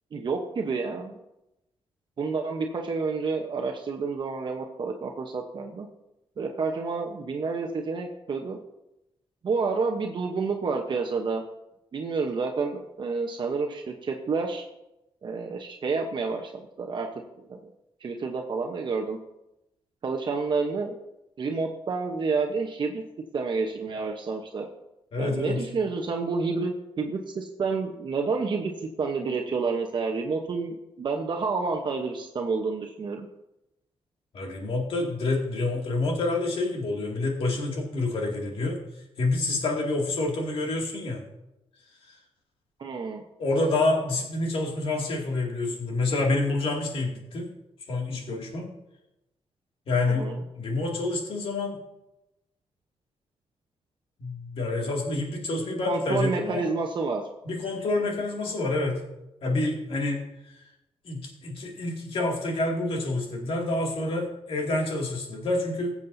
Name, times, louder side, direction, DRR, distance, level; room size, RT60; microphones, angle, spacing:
voice 1, 0.1-1.1 2.2-5.9 6.4-8.6 9.4-11.4 11.9-14.6 15.2-17.1 17.5-17.6 18.0-19.2 20.0-21.0 21.4-23.0 23.3-24.7 25.2-28.7 29.0-33.3 42.8-43.2 50.0-50.4 55.9-57.2, right 4 dB, 50° right, 2 dB, 0.9 m, -29 dB
voice 2, 25.1-25.6 34.3-38.8 39.2-41.2 42.1-42.2 43.4-47.5 47.9-48.7 49.9-51.8 54.2-56.7 57.5-59.0 59.4-60.5 61.0-65.9, left 2 dB, 65° left, 0 dB, 2.4 m, -28 dB
20.0 x 7.3 x 2.7 m, 0.90 s
cardioid pair, 105°, 10 cm